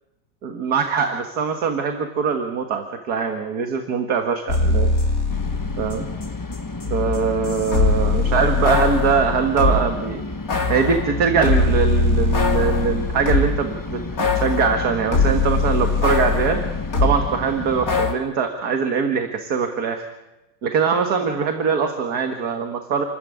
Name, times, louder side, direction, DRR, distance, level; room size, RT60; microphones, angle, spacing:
voice 1, 0.4-4.9 5.8-6.1 6.9-10.2 10.7-16.6 17.0-20.1 20.6-23.0, right 6 dB, 60° right, 5 dB, 2.1 m, -22 dB
sound 1, 4.5-6.3 6.5-9.9 10.5-13.7 14.2-17.2 17.9-18.1, left 3 dB, 55° left, 2.9 m, -21 dB
sound 2, 5.3-18.1, left 3 dB, 15° left, 0.7 m, -32 dB
28.5 x 14.5 x 9.8 m, 0.99 s
omnidirectional pair, 1.9 m